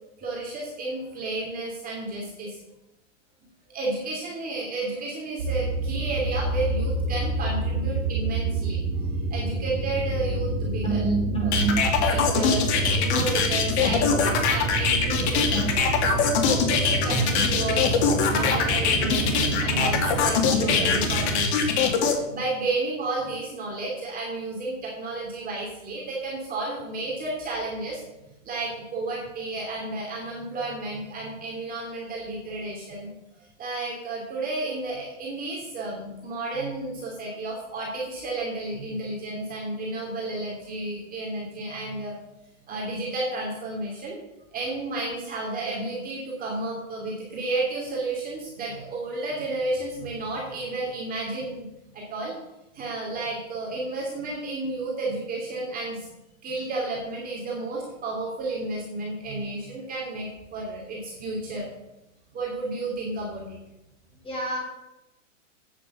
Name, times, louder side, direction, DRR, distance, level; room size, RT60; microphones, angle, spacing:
voice 1, 0.2-2.6 3.7-11.1 11.4-15.9 16.4-28.0 28.4-33.1 33.4-42.1 42.7-44.2 44.5-51.7 51.9-52.4 52.7-56.1 56.4-61.7 62.3-63.6, right 2 dB, 20° right, -3 dB, 2.7 m, -32 dB
sound 1, 5.4-21.4, right 3 dB, 90° right, 2.0 m, -28 dB
voice 2, 10.8-11.8 64.2-64.6, right 4 dB, 15° left, -2 dB, 4.2 m, -26 dB
sound 2, 11.5-22.1, left 6 dB, 60° left, 2.2 m, -23 dB
8.9 x 7.2 x 6.9 m, 0.93 s
hypercardioid pair, 140°, 38 cm